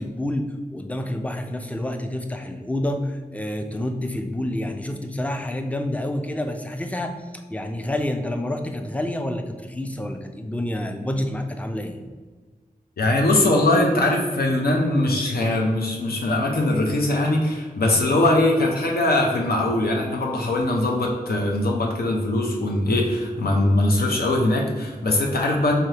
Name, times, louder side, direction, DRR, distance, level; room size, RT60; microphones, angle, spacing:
voice 1, 0.0-12.0, left 1 dB, 10° left, 5 dB, 0.4 m, -28 dB
voice 2, 13.0-25.8, left 1 dB, 80° left, 0 dB, 0.5 m, -21 dB
3.8 x 3.2 x 2.8 m, 1.4 s
wide cardioid pair, 55°, 16 cm